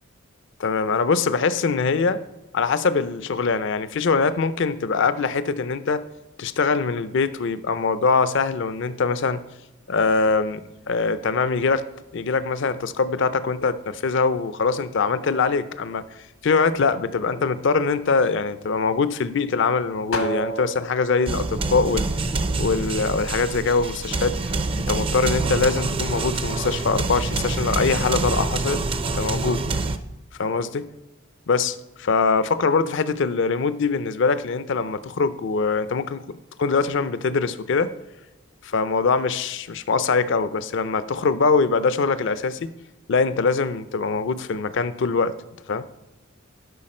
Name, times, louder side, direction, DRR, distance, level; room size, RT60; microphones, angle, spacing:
voice 1, 0.6-2.2 2.5-6.0 6.4-9.4 9.9-10.6 10.9-11.9 12.1-16.0 16.4-22.1 22.6-29.6 30.4-30.9 31.5-36.2 36.6-37.9 38.6-42.7 43.1-45.3 45.7-45.9, left 4 dB, 60° left, 14 dB, 0.5 m, -23 dB
sound 1, 9.9-27.2, right 1 dB, 80° left, 1.2 m, -40 dB
sound 2, 21.3-30.0, right 3 dB, 25° right, 0.4 m, -26 dB
11.5 x 5.7 x 4.3 m, 0.98 s
head